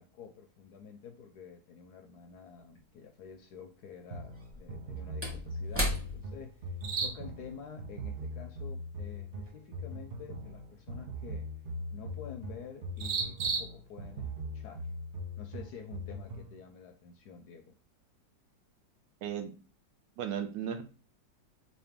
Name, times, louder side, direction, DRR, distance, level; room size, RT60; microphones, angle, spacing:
voice 1, 0.0-6.7 7.0-11.5 11.9-14.9 15.4-17.8, left 6 dB, 70° left, 5 dB, 1.0 m, -49 dB
sound 1, 2.2-16.4, right 5 dB, 50° right, 1.0 m, -44 dB
Slam / Wood, 2.8-2.9 4.3-9.0 9.3-9.5, equal, 10° right, 0.7 m, -38 dB
sound 2, 4.1-16.6, equal, 70° right, 0.5 m, -41 dB
voice 2, 19.2-19.5 20.2-20.8, right 8 dB, 85° right, 7 dB, 1.4 m, -35 dB
3.9 x 2.7 x 3.4 m, 0.35 s
omnidirectional pair, 2.0 m